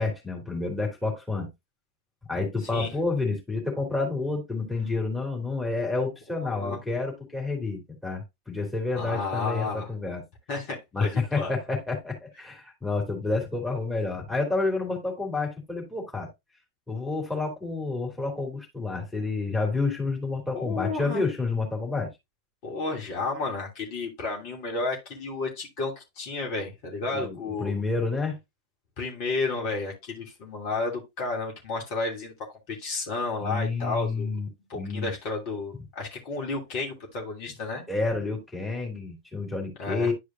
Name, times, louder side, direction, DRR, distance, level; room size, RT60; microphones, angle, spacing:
voice 1, 0.0-1.5 2.3-10.2 10.9-16.3 16.9-22.1 27.1-28.4 33.4-35.1 37.9-40.1, left 3 dB, 5° left, 2.8 m, -29 dB
voice 2, 6.4-6.8 8.9-9.9 10.5-11.5 20.5-21.2 22.6-27.7 29.0-32.3 32.7-34.3 34.7-37.8 39.8-40.1, left 3 dB, 45° left, 2.7 m, -32 dB
10.5 x 4.9 x 2.6 m
figure-of-eight pair, 90°, 0 cm